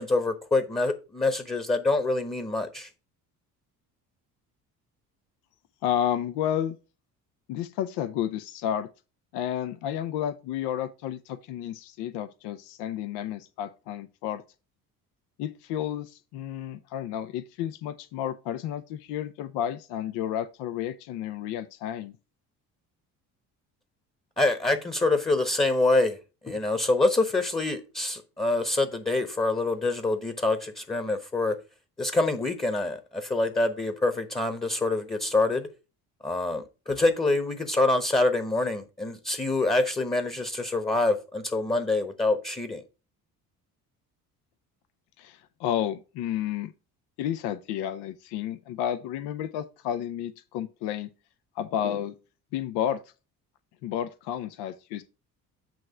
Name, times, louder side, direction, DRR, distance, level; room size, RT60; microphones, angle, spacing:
voice 1, 0.0-2.9 24.4-26.2 26.4-31.6 32.0-35.7 36.2-42.8, left 2 dB, 10° left, 1.1 m, -26 dB
voice 2, 5.8-6.8 7.5-8.9 9.3-14.4 15.4-22.1 45.2-46.7 47.2-51.1 51.6-52.1 52.5-53.0 53.8-55.0, left 10 dB, 55° left, 0.7 m, -31 dB
8.8 x 3.2 x 5.7 m
figure-of-eight pair, 50°, 48 cm